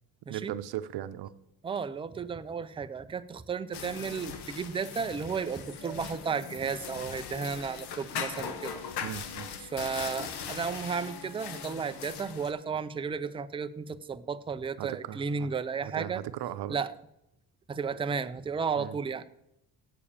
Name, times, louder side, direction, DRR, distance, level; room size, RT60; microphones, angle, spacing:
voice 1, 0.3-1.3 9.0-9.5 14.8-15.5 15.8-16.8 18.8-19.0, right 12 dB, 80° right, 12 dB, 0.7 m, -37 dB
voice 2, 1.6-8.8 9.6-16.2 16.7-16.9 17.7-19.3, right 5 dB, 15° right, 11 dB, 0.3 m, -33 dB
sound 1, 3.7-12.5, left 7 dB, 90° left, 1.2 m, -40 dB
8.4 x 6.9 x 7.1 m, 0.82 s
cardioid pair, 155°, 39 cm